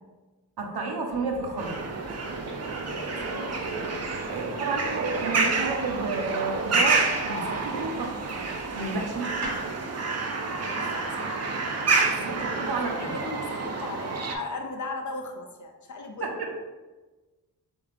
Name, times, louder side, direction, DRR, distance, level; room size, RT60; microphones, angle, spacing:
voice 1, 0.6-1.8 2.1-2.3 4.3-8.1 8.7-9.4 12.2-13.2 16.2-16.5, right 3 dB, 70° right, 1 dB, 0.8 m, -31 dB
sound 1, 1.1-9.7, right 1 dB, 85° right, 1.4 m, -42 dB
sound 2, 1.6-14.4, right 4 dB, 40° right, 0.4 m, -29 dB
voice 2, 2.9-3.2 8.8-9.1 10.6-11.5 11.8-12.2 12.5-16.3, left 3 dB, 50° left, 3 dB, 0.5 m, -38 dB
3.5 x 2.7 x 3.3 m, 1.2 s
wide cardioid pair, 100°, 40 cm